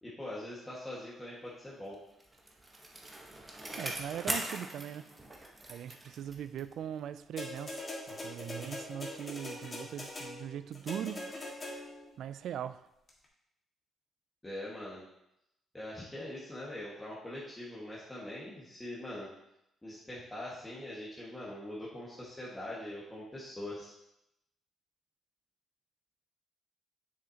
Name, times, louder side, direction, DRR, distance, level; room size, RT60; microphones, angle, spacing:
voice 1, 0.0-2.0 14.4-15.0 15.7-19.3 19.8-23.9, left 1 dB, 10° left, -7 dB, 1.7 m, -42 dB
Bicycle, 1.9-6.8 7.2-7.3, right 1 dB, 20° right, 1.2 m, -41 dB
voice 2, 3.8-5.0 5.7-11.5 12.2-12.9, right 9 dB, 75° right, 13 dB, 0.3 m, -40 dB
sound 1, 7.4-12.1 13.1-13.2, left 1 dB, 30° left, 1.8 m, -42 dB
7.4 x 6.3 x 2.9 m, 0.83 s
cardioid pair, 90°, 0 cm